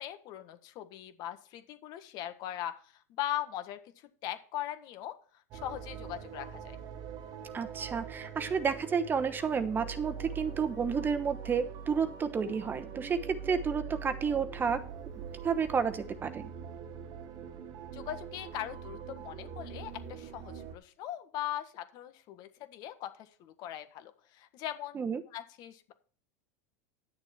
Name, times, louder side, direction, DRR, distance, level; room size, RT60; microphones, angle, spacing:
voice 1, 0.0-2.8 3.2-3.8 4.2-5.2 5.6-6.8 17.9-25.0 25.3-25.9, left 12 dB, 50° left, 9 dB, 1.5 m, -40 dB
sound 1, 5.5-20.8, right 7 dB, 50° right, 1.3 m, -43 dB
voice 2, 7.5-14.8 15.4-16.5 24.9-25.2, right 6 dB, 25° right, 9 dB, 1.0 m, -31 dB
10.5 x 7.0 x 4.4 m, 0.44 s
supercardioid pair, 110°, 9 cm